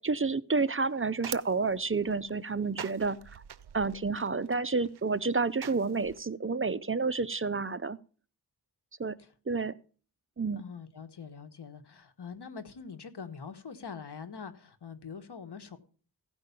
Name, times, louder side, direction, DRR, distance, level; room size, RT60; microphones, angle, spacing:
voice 1, 0.0-3.4 3.7-8.0 9.0-9.2 9.5-9.7 10.4-10.6, right 4 dB, 35° right, 0.5 m, -30 dB
sound 1, 0.6-6.2, right 9 dB, 85° right, 0.5 m, -46 dB
voice 2, 10.6-15.8, left 6 dB, 85° left, 1.2 m, -44 dB
16.0 x 5.3 x 6.8 m
wide cardioid pair, 65°, 39 cm